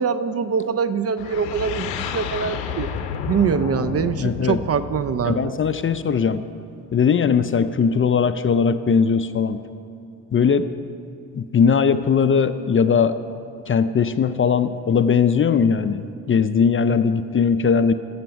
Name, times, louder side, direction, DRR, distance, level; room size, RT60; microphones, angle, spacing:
voice 1, 0.0-2.9 3.3-5.5 16.9-17.0, right 6 dB, 40° right, 13 dB, 0.5 m, -23 dB
sound 1, 1.2-6.0, left 7 dB, 90° left, 0.6 m, -31 dB
voice 2, 4.2-4.6 5.2-6.4 6.9-9.6 10.3-10.7 11.3-13.2 13.7-17.9, left 6 dB, 35° left, 11 dB, 0.5 m, -19 dB
14.0 x 5.9 x 5.1 m, 2.8 s
hypercardioid pair, 45°, 39 cm